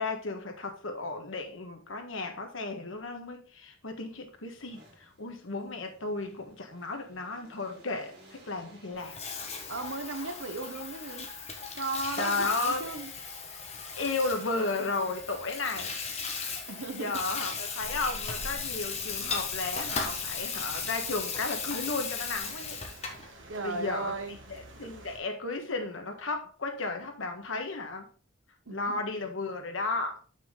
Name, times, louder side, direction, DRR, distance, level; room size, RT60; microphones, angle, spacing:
voice 1, 0.0-9.2 12.2-12.8 14.0-16.0 16.9-22.8 23.6-24.2 24.5-28.1 28.7-30.2, left 3 dB, 85° left, 1.6 m, -34 dB
sound 1, 3.8-11.4 12.3-13.1 16.3-17.1 17.6-19.9, equal, 50° right, 3.4 m, -59 dB
Water tap faucet / Sink (filling or washing), 8.9-23.3, left 5 dB, 35° left, 1.4 m, -37 dB
voice 2, 9.7-11.3 11.8-13.1 16.7-17.2 23.5-24.4 28.7-29.1, right 3 dB, 85° right, 1.1 m, -36 dB
sound 2, 17.8-25.2, right 1 dB, 70° right, 1.6 m, -48 dB
7.4 x 6.0 x 3.8 m
head